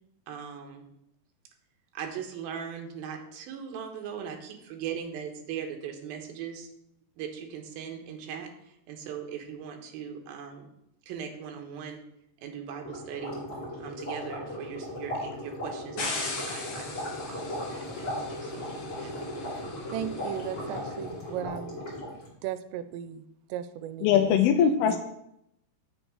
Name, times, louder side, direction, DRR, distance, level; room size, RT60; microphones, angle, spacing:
voice 1, 0.3-0.8 1.9-6.7 7.2-8.5 8.9-10.7 11.1-12.0 12.4-13.4 13.8-19.7, right 7 dB, 70° right, 3 dB, 2.6 m, -39 dB
sound 1, 12.8-22.3, left 1 dB, 25° left, 2.4 m, -37 dB
sound 2, 16.0-21.1, left 3 dB, 55° left, 2.0 m, -39 dB
voice 2, 19.9-21.8 22.1-24.4 24.9-25.0, right 11 dB, 90° right, 12 dB, 2.8 m, -37 dB
voice 3, 24.0-25.0, left 8 dB, 85° left, 5 dB, 2.3 m, -21 dB
7.7 x 6.4 x 4.8 m, 0.78 s
omnidirectional pair, 4.9 m